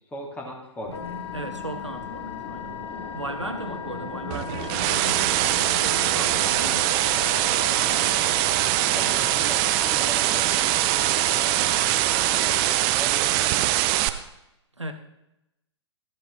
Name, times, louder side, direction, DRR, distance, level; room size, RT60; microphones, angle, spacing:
voice 1, 0.1-1.2 8.9-10.7 11.3-13.9, equal, 10° left, -1 dB, 2.0 m, -40 dB
sound 1, 0.8-11.4, left 3 dB, 30° left, 2.0 m, -39 dB
Wind instrument woodwind instrument, 0.9-12.7, left 8 dB, 70° left, 1.0 m, -39 dB
voice 2, 1.3-2.7 3.1-6.8 7.4-8.2 14.8-14.9, right 2 dB, 80° right, 7 dB, 1.3 m, -36 dB
sound 2, 4.3-14.1, right 15 dB, 30° right, 0.6 m, -22 dB
13.0 x 7.7 x 3.7 m, 0.89 s
figure-of-eight pair, 115°, 15 cm